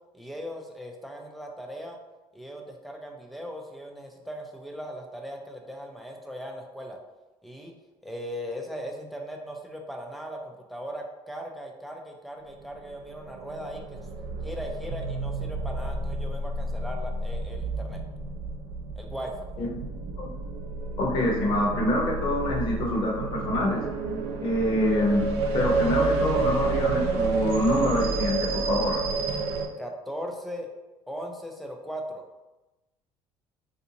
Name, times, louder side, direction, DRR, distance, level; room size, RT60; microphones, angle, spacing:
voice 1, 0.1-2.0 2.3-7.0 7.4-7.7 8.0-14.0 14.4-18.0 19.0-19.5 29.8-30.7 31.1-32.2, equal, ahead, 1 dB, 0.3 m, -38 dB
sound 1, 12.8-29.7, right 3 dB, 80° right, 0.4 m, -30 dB
voice 2, 21.0-23.8 24.4-29.0, left 1 dB, 50° left, -2 dB, 0.9 m, -26 dB
3.5 x 2.6 x 2.8 m, 1.1 s
cardioid pair, 170°, 10 cm